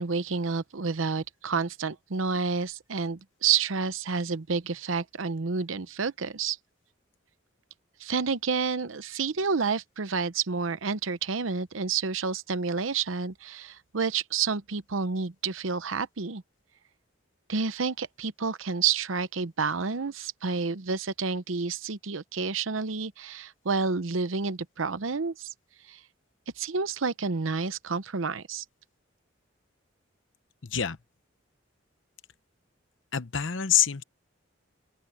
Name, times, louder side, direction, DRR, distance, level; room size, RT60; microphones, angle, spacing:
voice 1, 0.0-6.6 8.0-16.4 17.5-25.5 25.9-26.0 26.6-28.6, right 5 dB, 90° right, 0.8 m, -29 dB
voice 2, 30.6-31.0 33.1-34.0, left 9 dB, 70° left, 0.9 m, -26 dB
open air
head